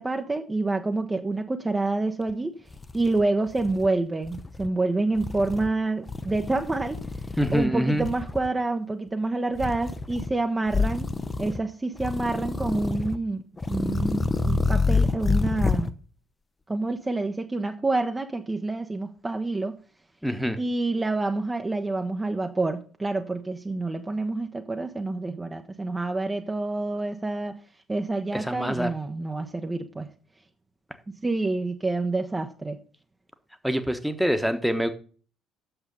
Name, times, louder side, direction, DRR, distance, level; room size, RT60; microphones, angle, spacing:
voice 1, 0.0-2.5 2.9-7.0 7.5-11.1 11.4-15.9 16.7-19.7 20.6-27.6 27.9-30.1 31.1-32.8, right 2 dB, 20° right, 4 dB, 0.9 m, -28 dB
sound 1, 2.3-2.4 2.7-3.9 4.2-4.7 5.1-5.7 6.1-7.7 8.0-8.5 9.5-10.3 10.7-11.6 12.0-13.2 13.6-15.9, left 4 dB, 20° left, 0.8 m, -28 dB
voice 2, 7.4-8.1 20.2-20.6 28.3-28.9 33.6-34.9, equal, ahead, 8 dB, 1.2 m, -25 dB
9.0 x 7.0 x 5.4 m, 0.41 s
figure-of-eight pair, 50°, 0 cm